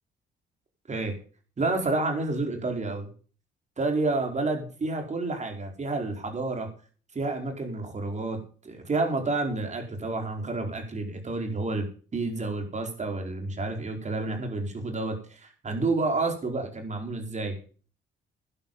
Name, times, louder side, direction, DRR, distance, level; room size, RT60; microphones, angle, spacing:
voice 1, 1.6-3.1 3.8-6.7 7.1-8.4 8.6-11.9 12.1-17.5, right 3 dB, 35° right, 4 dB, 4.5 m, -29 dB
11.5 x 11.0 x 5.5 m, 0.40 s
cardioid pair, 90°, 20 cm